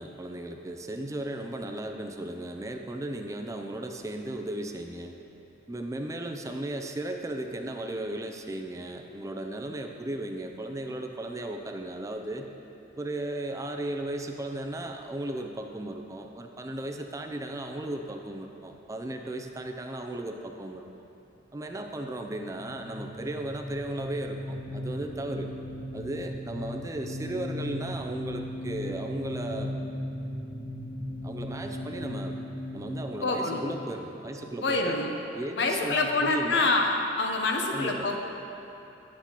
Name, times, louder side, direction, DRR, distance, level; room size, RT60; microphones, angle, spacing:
voice 1, 0.0-5.1 5.7-12.5 13.0-20.9 21.5-25.5 25.9-29.7 31.2-32.4 32.7-35.0 35.3-36.7 37.7-38.1, right 1 dB, 15° right, 4 dB, 0.4 m, -36 dB
sound 1, 22.3-34.7, left 1 dB, 25° left, 1.3 m, -37 dB
voice 2, 33.2-33.6 34.6-35.1 35.6-38.2, left 3 dB, 65° left, 2 dB, 0.7 m, -26 dB
9.8 x 8.1 x 2.9 m, 2.9 s
head